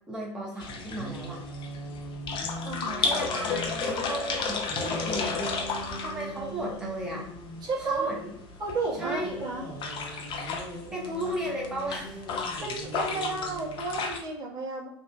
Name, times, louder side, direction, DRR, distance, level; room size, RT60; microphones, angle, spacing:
voice 1, 0.1-1.4 3.0-5.5 6.0-7.2 7.8-8.3 9.0-9.4 10.9-12.2, right 1 dB, 5° right, -4 dB, 1.0 m, -35 dB
sound 1, 0.5-3.8 4.7-7.6 8.8-14.0, right 1 dB, 15° left, 1.3 m, -41 dB
sound 2, 0.6-14.2, left 4 dB, 35° left, 0.5 m, -34 dB
voice 2, 2.6-3.1 7.6-8.1 8.6-9.6 12.6-14.9, right 3 dB, 30° right, -3 dB, 0.9 m, -32 dB
2.7 x 2.5 x 2.2 m, 0.76 s
figure-of-eight pair, 80°, 14 cm